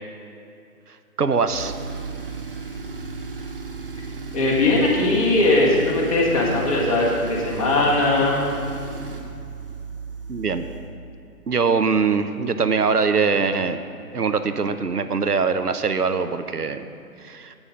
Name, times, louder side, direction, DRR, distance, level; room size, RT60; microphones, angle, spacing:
voice 1, 1.2-1.7 10.3-10.7 11.5-13.8 14.1-16.8 17.3-17.6, right 5 dB, 80° right, 10 dB, 0.8 m, -22 dB
Tools, 1.5-10.9, right 4 dB, 40° right, 0.7 m, -34 dB
voice 2, 4.3-8.4, left 2 dB, 25° left, -4 dB, 1.6 m, -19 dB
8.9 x 8.9 x 5.2 m, 2.5 s
figure-of-eight pair, 145°, 46 cm